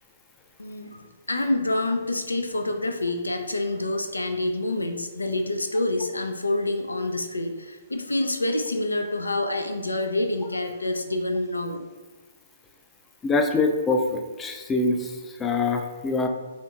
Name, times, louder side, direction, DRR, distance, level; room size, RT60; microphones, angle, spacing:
voice 1, 0.6-11.8, left 2 dB, 90° left, 5 dB, 0.3 m, -27 dB
voice 2, 13.2-16.3, left 3 dB, 15° left, 4 dB, 0.4 m, -24 dB
4.4 x 2.7 x 2.4 m, 1.3 s
figure-of-eight pair, 125°, 0 cm